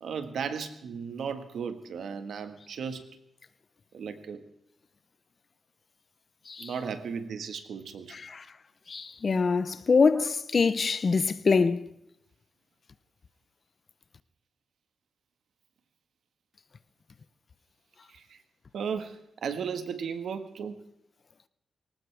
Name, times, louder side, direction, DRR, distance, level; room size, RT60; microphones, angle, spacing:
voice 1, 0.0-3.1 3.9-4.4 6.6-8.1 10.1-10.2 18.1-18.4 18.7-20.8, right 6 dB, 70° right, 1.6 m, -35 dB
voice 2, 8.1-8.4 8.9-11.9, left 4 dB, 35° left, 0.6 m, -24 dB
20.5 x 19.0 x 3.4 m
wide cardioid pair, 155°, 0 cm